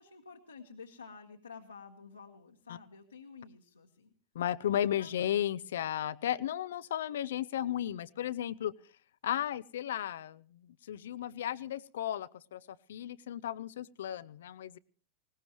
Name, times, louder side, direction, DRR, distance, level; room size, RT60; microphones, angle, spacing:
voice 1, 0.0-4.1 4.7-5.4, left 5 dB, 80° left, 0 dB, 1.5 m, -51 dB
voice 2, 4.3-8.7 9.2-12.6 12.9-14.8, left 11 dB, 60° left, 18 dB, 0.6 m, -34 dB
20.0 x 18.5 x 3.1 m, 0.42 s
figure-of-eight pair, 90°, 0 cm